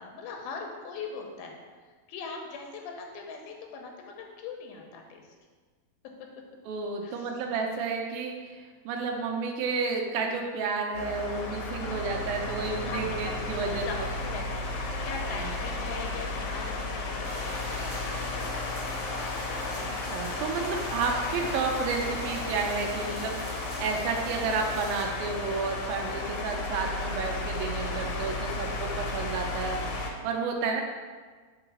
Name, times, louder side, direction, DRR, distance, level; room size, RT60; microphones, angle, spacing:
voice 1, 0.0-1.6 2.1-5.3 6.0-6.3 7.0-7.3 11.8-13.3 13.7-18.8, left 4 dB, 85° left, 2 dB, 2.7 m, -41 dB
voice 2, 6.7-13.9 15.4-15.5 19.7-23.4 23.8-29.9 30.2-30.8, right 4 dB, 80° right, 2 dB, 2.5 m, -31 dB
sound 1, 10.9-30.1, left 2 dB, 70° left, 2.0 m, -34 dB
sound 2, 17.2-25.0, equal, 20° right, 0.7 m, -42 dB
5.8 x 3.9 x 6.0 m, 1.5 s
omnidirectional pair, 4.3 m